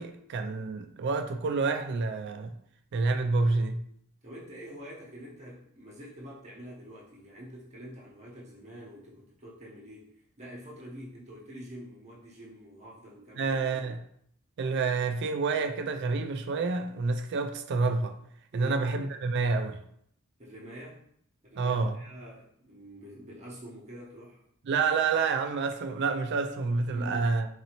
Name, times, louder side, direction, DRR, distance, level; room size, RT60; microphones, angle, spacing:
voice 1, 0.0-2.5 2.9-3.8 13.4-14.0 14.6-18.2 18.5-19.8 21.6-22.0 24.7-27.5, right 4 dB, 50° right, 0.3 m, -28 dB
voice 2, 4.2-10.1 10.4-13.7 18.5-18.8 20.4-21.0 21.4-24.4 26.9-27.3, equal, 30° right, 0.8 m, -46 dB
4.0 x 2.7 x 2.9 m
head